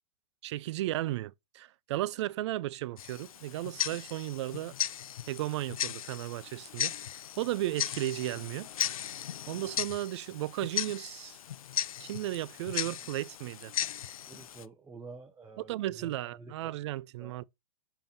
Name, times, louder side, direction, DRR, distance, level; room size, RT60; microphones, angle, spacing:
voice 1, 0.4-4.7 5.3-6.9 7.4-8.7 9.0-9.1 9.5-11.4 12.0-13.7 15.6-17.4, right 15 dB, 55° right, 0.4 m, -35 dB
Tick-tock, 3.0-14.7, left 10 dB, 80° left, 0.5 m, -37 dB
voice 2, 14.3-16.8 17.2-17.4, right 4 dB, 10° right, 0.8 m, -49 dB
5.7 x 3.6 x 5.8 m
hypercardioid pair, 125°, 18 cm